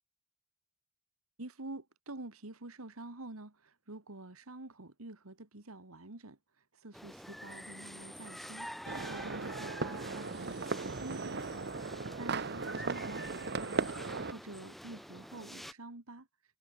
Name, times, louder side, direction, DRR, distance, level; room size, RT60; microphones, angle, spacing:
voice 1, 1.4-6.4 6.7-13.8 14.3-16.3, right 2 dB, 80° right, 2.1 m, -48 dB
sound 1, 6.9-15.7, equal, ahead, 1.3 m, -47 dB
sound 2, 8.9-14.3, right 4 dB, 50° right, 1.0 m, -37 dB
head